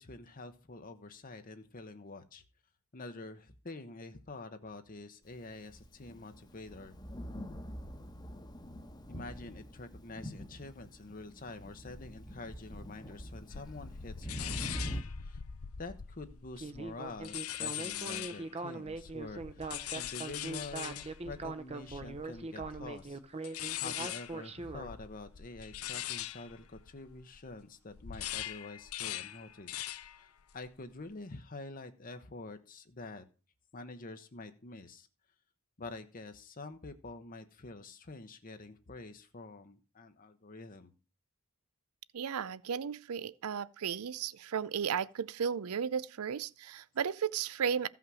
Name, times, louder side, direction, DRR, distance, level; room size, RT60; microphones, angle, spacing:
voice 1, 0.0-2.4 2.9-7.0 9.1-15.4 15.8-33.2 33.7-35.1 35.8-40.9, left 3 dB, 40° left, 0.9 m, -47 dB
Thunder, 5.5-15.0, equal, 20° left, 1.1 m, -44 dB
sound 1, 13.5-18.5 18.9-27.5 27.9-30.2 30.5-30.9, left 11 dB, 70° left, 0.7 m, -42 dB
Speech synthesizer, 16.6-24.9, right 3 dB, 30° right, 0.8 m, -41 dB
voice 2, 42.1-47.9, right 7 dB, 75° right, 0.5 m, -34 dB
15.5 x 5.8 x 6.2 m
head